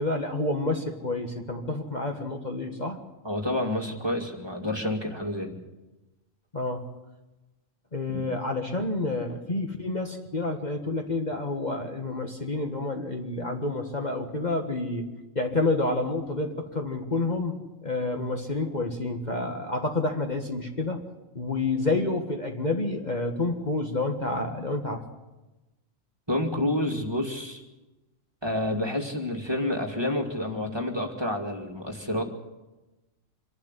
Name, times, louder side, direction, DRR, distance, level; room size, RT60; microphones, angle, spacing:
voice 1, 0.0-3.0 6.5-6.8 7.9-15.1 15.4-17.6 17.8-21.0 21.4-25.0, left 2 dB, 35° left, 3 dB, 1.7 m, -29 dB
voice 2, 3.2-5.6 8.1-8.2 26.3-27.6 28.4-32.2, left 1 dB, 20° right, 2 dB, 2.3 m, -29 dB
26.0 x 11.5 x 9.9 m, 1.1 s
omnidirectional pair, 1.3 m